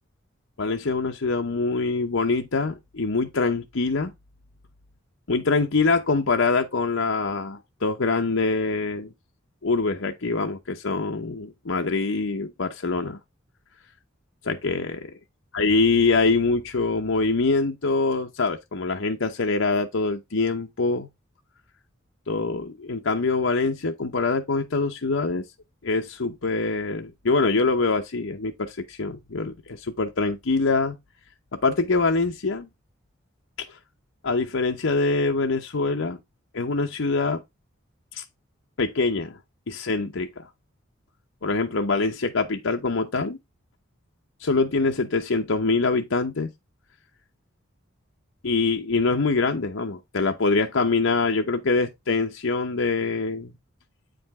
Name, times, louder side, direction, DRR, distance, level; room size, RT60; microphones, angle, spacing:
voice 1, 0.6-4.1 5.3-9.1 9.6-13.2 14.4-15.0 15.5-21.1 22.3-25.5 25.8-31.0 31.5-32.7 34.2-36.2 36.5-37.4 38.1-38.2 38.8-39.4 39.7-40.5 41.4-43.4 44.4-46.5 48.4-53.5, left 3 dB, 75° left, 0.9 m, -24 dB
8.4 x 5.1 x 3.6 m
head